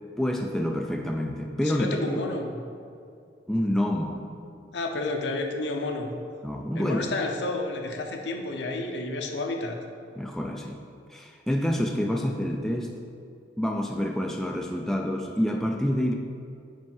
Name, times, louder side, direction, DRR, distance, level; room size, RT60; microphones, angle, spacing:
voice 1, 0.2-2.0 3.5-4.2 6.4-7.1 10.2-10.8 11.1-12.9 13.6-16.1, equal, ahead, 1 dB, 0.3 m, -27 dB
voice 2, 1.6-2.6 4.7-6.1 6.7-9.8, left 2 dB, 80° left, 3 dB, 0.7 m, -30 dB
5.3 x 4.4 x 5.5 m, 2.4 s
head